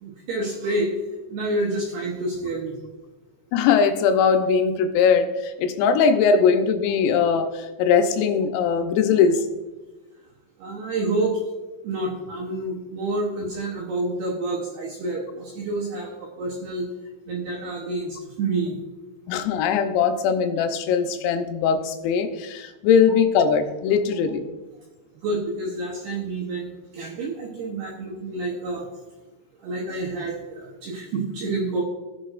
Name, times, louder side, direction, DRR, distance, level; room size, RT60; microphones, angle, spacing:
voice 1, 0.0-0.9 1.3-2.8 10.6-11.4 11.8-16.9 17.3-18.8 25.2-28.9 29.6-31.8, right 2 dB, 80° right, -2 dB, 2.4 m, -28 dB
voice 2, 3.5-9.4 19.3-24.4, left 6 dB, 85° left, 6 dB, 3.6 m, -20 dB
18.5 x 6.4 x 2.5 m, 1.2 s
omnidirectional pair, 6.0 m